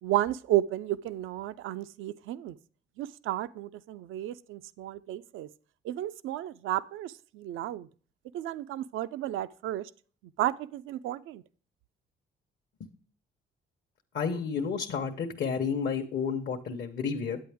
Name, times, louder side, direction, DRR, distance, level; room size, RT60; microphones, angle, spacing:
voice 1, 0.0-2.6 3.0-5.5 5.8-7.9 8.3-9.9 10.4-11.4, right 14 dB, 85° right, 0.4 m, -32 dB
voice 2, 14.1-17.4, left 6 dB, 60° left, 0.9 m, -31 dB
9.5 x 8.4 x 3.5 m
cardioid pair, 90°, 20 cm